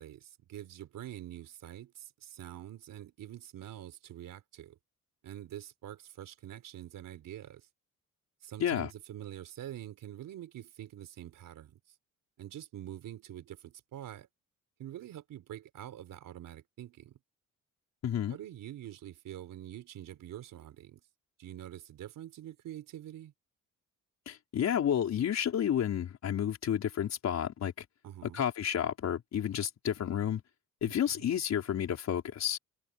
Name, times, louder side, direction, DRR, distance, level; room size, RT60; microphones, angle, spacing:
voice 1, 0.0-4.8 5.2-7.7 8.4-11.8 12.4-14.3 14.8-17.2 18.3-21.0 21.4-23.3 28.0-28.5 30.9-31.2, right 12 dB, 80° right, 4.1 m, -46 dB
voice 2, 18.0-18.4 24.3-27.7 28.3-30.4 30.8-32.6, left 9 dB, 55° left, 4.9 m, -31 dB
cardioid pair, 175°, 32 cm